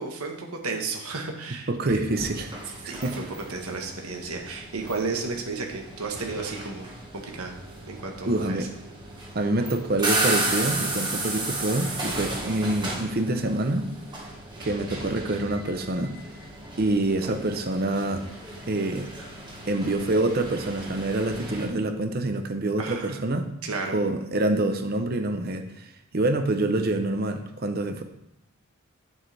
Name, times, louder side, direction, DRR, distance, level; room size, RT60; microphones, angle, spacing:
voice 1, 0.0-2.0 2.9-3.2 3.5-7.5 7.9-8.6 22.8-23.2 23.6-24.0, right 3 dB, 90° right, 2 dB, 1.3 m, -33 dB
voice 2, 1.7-2.5 2.8-3.2 8.2-8.7 9.3-13.9 14.6-16.2 16.8-18.2 18.7-19.1 19.6-23.5 23.9-25.9 26.1-28.0, right 2 dB, 45° right, 7 dB, 0.7 m, -26 dB
sound 1, 2.1-21.7, right 2 dB, 20° right, 1.6 m, -34 dB
8.4 x 7.7 x 3.4 m, 0.80 s
head